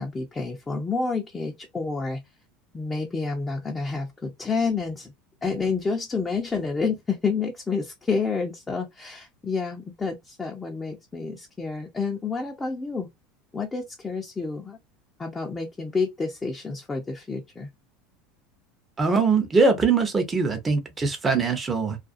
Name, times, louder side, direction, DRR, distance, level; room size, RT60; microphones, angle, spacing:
voice 1, 0.0-2.2 2.7-5.1 5.4-13.1 13.5-14.8 15.2-17.7, left 4 dB, 20° left, 0.6 m, -29 dB
voice 2, 19.0-22.0, right 4 dB, 20° right, 0.8 m, -22 dB
2.5 x 2.2 x 2.5 m
hypercardioid pair, 95°, 0 cm